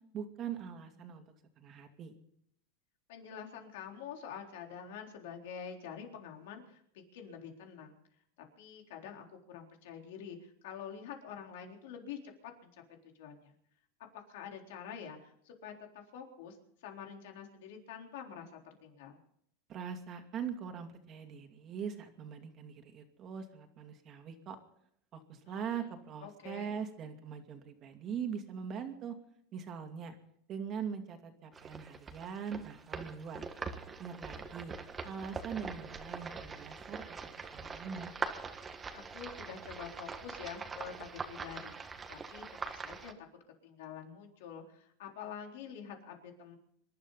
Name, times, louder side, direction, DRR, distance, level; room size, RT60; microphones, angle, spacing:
voice 1, 0.1-2.2 19.7-24.6 25.1-29.1 29.5-30.1 30.5-33.4 34.0-34.7 35.0-38.1, right 7 dB, 35° right, 5 dB, 2.5 m, -42 dB
voice 2, 3.1-6.8 7.1-8.0 8.6-12.8 13.2-13.5 14.3-19.2 25.4-25.8 26.2-26.7 38.9-43.3 43.6-46.6, left 7 dB, 75° left, 2 dB, 3.8 m, -47 dB
sound 1, 31.5-43.1, right 5 dB, 20° right, 1.5 m, -43 dB
26.5 x 12.5 x 4.1 m, 0.69 s
supercardioid pair, 140°, 0 cm